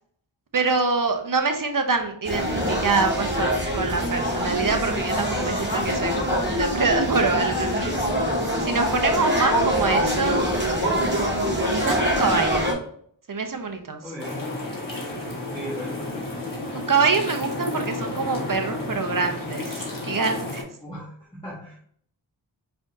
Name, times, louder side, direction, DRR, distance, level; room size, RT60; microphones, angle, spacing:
voice 1, 0.5-7.9 8.6-10.4 11.0-12.7 13.3-14.0 15.1-15.3 16.9-20.6, right 4 dB, 45° right, 5 dB, 0.8 m, -25 dB
sound 1, 2.2-12.7, equal, 25° right, 1.9 m, -24 dB
voice 2, 8.7-9.1 14.0-14.4 15.5-16.4 20.8-21.8, equal, 10° left, -8 dB, 1.5 m, -37 dB
sound 2, 14.2-20.6, left 2 dB, 45° left, 1.6 m, -32 dB
4.9 x 3.4 x 2.7 m, 0.62 s
cardioid pair, 40°, 45 cm